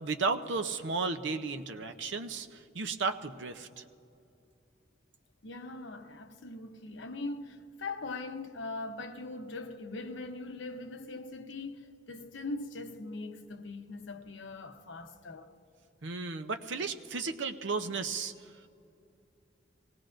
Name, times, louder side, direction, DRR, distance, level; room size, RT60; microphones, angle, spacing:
voice 1, 0.0-2.5 2.7-3.7 16.0-18.3, right 4 dB, 75° right, 0.7 m, -33 dB
voice 2, 5.4-15.5, left 2 dB, 75° left, 0.9 m, -41 dB
24.0 x 18.5 x 2.6 m
head